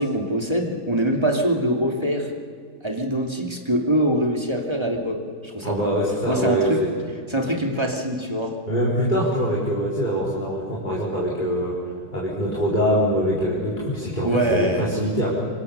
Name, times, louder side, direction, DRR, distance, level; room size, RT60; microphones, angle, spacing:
voice 1, 0.0-2.3 2.8-5.9 6.3-6.8 7.3-8.5 14.2-14.9, right 1 dB, 15° right, 1 dB, 2.6 m, -23 dB
voice 2, 5.6-6.9 8.7-11.8 12.1-15.3, equal, 30° left, -6 dB, 4.3 m, -23 dB
26.0 x 24.5 x 6.8 m, 2.2 s
omnidirectional pair, 1.7 m